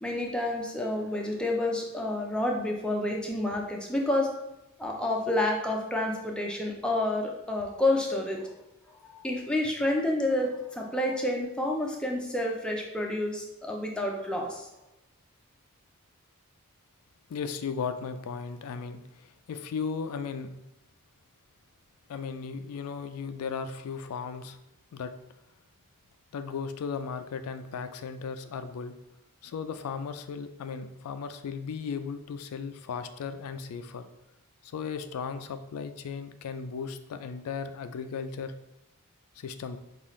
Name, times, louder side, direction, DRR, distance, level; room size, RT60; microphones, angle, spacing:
voice 1, 0.0-4.3 4.8-8.6 9.2-14.7, left 1 dB, 5° left, -1 dB, 0.5 m, -29 dB
voice 2, 17.3-20.5 22.1-24.6 24.9-25.1 26.3-28.9 29.4-34.1 34.6-38.5 39.4-39.8, left 6 dB, 85° left, 9 dB, 0.4 m, -36 dB
5.4 x 2.4 x 3.1 m, 0.90 s
head